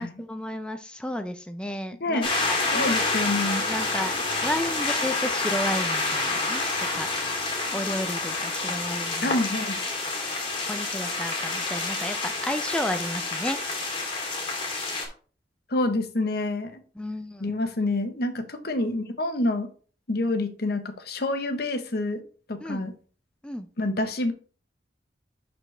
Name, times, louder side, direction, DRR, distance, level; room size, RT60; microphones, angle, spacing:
voice 1, 0.0-2.9 3.7-4.2 4.4-6.6 6.9-7.1 7.7-9.4 10.7-13.6 17.0-17.5 22.6-22.9 23.4-23.7, left 1 dB, 5° left, 7 dB, 0.4 m, -32 dB
voice 2, 2.0-2.3 2.7-3.6 9.2-9.8 15.7-16.8 17.4-19.7 20.1-22.2 22.5-22.9 23.8-24.3, left 2 dB, 60° left, 8 dB, 1.0 m, -27 dB
sound 1, 2.2-15.1, left 3 dB, 30° left, 2.0 m, -28 dB
11.0 x 4.2 x 3.3 m, 0.41 s
head